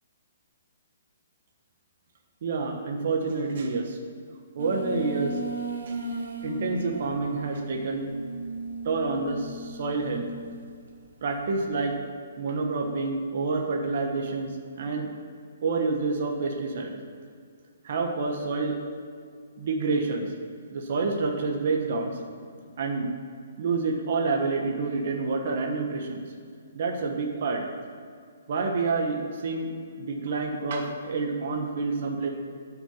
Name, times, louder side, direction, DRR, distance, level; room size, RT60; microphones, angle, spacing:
voice 1, 2.4-4.0 4.5-5.4 5.9-6.0 6.4-8.1 8.8-10.3 11.2-11.9 12.4-15.1 15.6-16.9 17.8-18.8 19.6-20.3 20.7-22.3 22.8-23.1 23.6-26.2 26.7-27.6 28.5-29.7 30.0-32.3, right 3 dB, 40° right, 2 dB, 1.3 m, -28 dB
sound 1, 4.6-10.6, right 2 dB, 80° right, 1.7 m, -36 dB
9.7 x 6.1 x 7.1 m, 2.2 s
hypercardioid pair, 175°, 0 cm